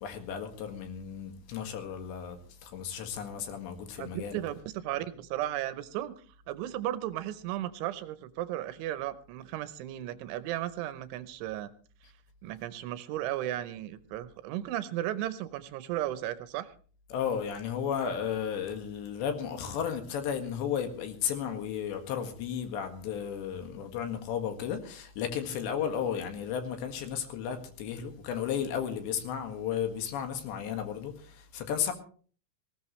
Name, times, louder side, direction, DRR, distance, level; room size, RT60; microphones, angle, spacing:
voice 1, 0.0-4.4 17.1-31.9, left 8 dB, 70° left, 3.9 m, -34 dB
voice 2, 4.0-6.1 6.5-11.7 12.4-16.7, right 13 dB, 80° right, 3.1 m, -35 dB
19.5 x 18.0 x 3.2 m
omnidirectional pair, 5.6 m